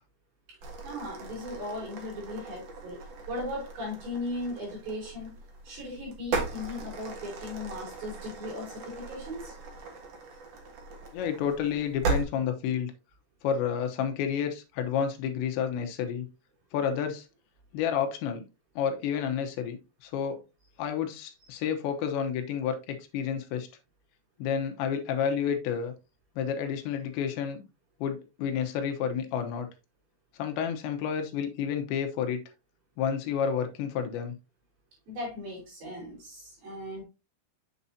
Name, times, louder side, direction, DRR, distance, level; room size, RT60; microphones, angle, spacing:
sound 1, 0.6-12.2, right 4 dB, 85° right, 1.4 m, -38 dB
voice 1, 0.8-5.4 5.6-9.5 35.1-37.0, left 1 dB, 55° right, 5.0 m, -37 dB
voice 2, 11.1-12.9 13.4-16.3 16.7-17.3 17.7-18.5 18.8-20.4 20.8-23.7 24.4-25.9 26.4-27.6 28.0-29.7 30.4-32.4 33.0-34.4, left 8 dB, 75° left, 3.0 m, -30 dB
7.2 x 7.0 x 2.7 m
omnidirectional pair, 5.5 m